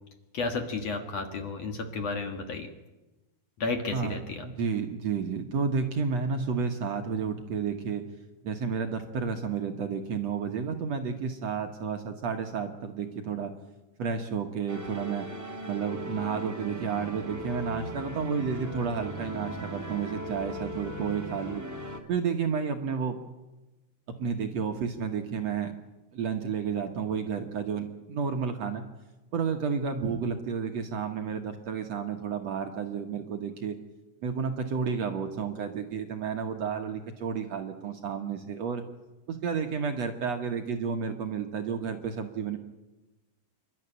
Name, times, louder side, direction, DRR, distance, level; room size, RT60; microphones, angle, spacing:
voice 1, 0.3-2.7 3.6-4.5, left 3 dB, 55° left, 5 dB, 2.3 m, -32 dB
voice 2, 3.9-8.0 8.4-13.5 14.0-15.3 15.6-21.6 22.1-23.1 24.1-25.7 26.1-28.9 29.3-33.8 34.2-38.8 39.3-42.6, right 6 dB, 60° right, 4 dB, 2.0 m, -31 dB
sound 1, 14.7-22.0, equal, 5° right, 1.6 m, -38 dB
27.5 x 12.5 x 10.0 m, 1.1 s
omnidirectional pair, 4.2 m